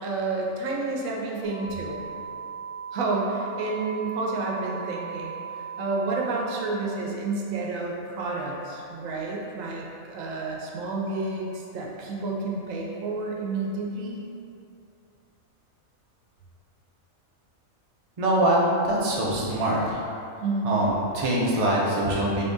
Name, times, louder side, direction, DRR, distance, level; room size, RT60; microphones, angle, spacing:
voice 1, 0.0-2.1 2.9-14.1 20.4-20.7, right 3 dB, 85° right, -1 dB, 1.0 m, -30 dB
sound 1, 1.4-6.4, right 7 dB, 70° left, 1.2 m, -38 dB
voice 2, 18.2-18.6 18.8-20.0 20.6-22.4, right 1 dB, 45° right, -5 dB, 0.5 m, -23 dB
3.7 x 2.6 x 3.5 m, 2.6 s
omnidirectional pair, 1.4 m